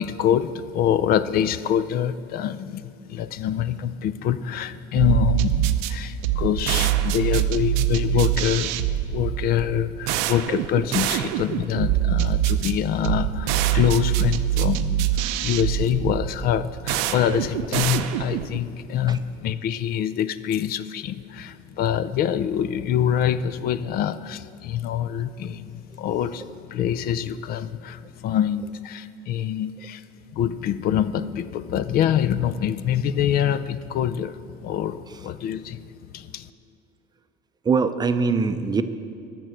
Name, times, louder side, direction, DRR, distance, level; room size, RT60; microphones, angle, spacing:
voice 1, 0.0-30.0 30.3-35.8 36.1-36.5, left 9 dB, 55° left, 14 dB, 0.4 m, -25 dB
sound 1, 5.0-18.6, right 12 dB, 90° right, 0.6 m, -24 dB
voice 2, 37.6-38.8, right 5 dB, 20° right, 10 dB, 0.5 m, -22 dB
13.5 x 6.1 x 7.8 m, 2.6 s
cardioid pair, 125°, 19 cm